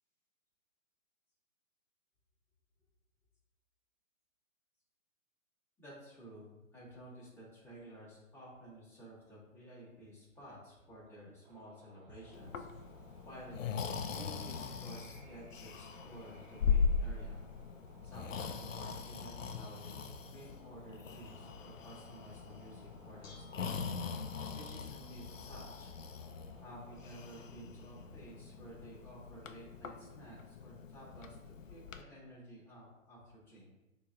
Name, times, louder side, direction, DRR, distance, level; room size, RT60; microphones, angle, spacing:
voice 1, 5.8-12.6 13.2-13.8 14.1-17.4 18.0-23.9 24.5-25.9 26.6-33.7, right 1 dB, 5° left, -9 dB, 1.5 m, -53 dB
sound 1, 11.4-27.4, right 2 dB, 40° right, 0.8 m, -61 dB
Breathing, 12.3-32.0, left 6 dB, 65° left, 0.5 m, -40 dB
Bell / Dishes pots and pans, 22.8-29.5, left 1 dB, 45° left, 1.0 m, -60 dB
6.6 x 2.9 x 2.4 m, 0.99 s
figure-of-eight pair, 130°, 42 cm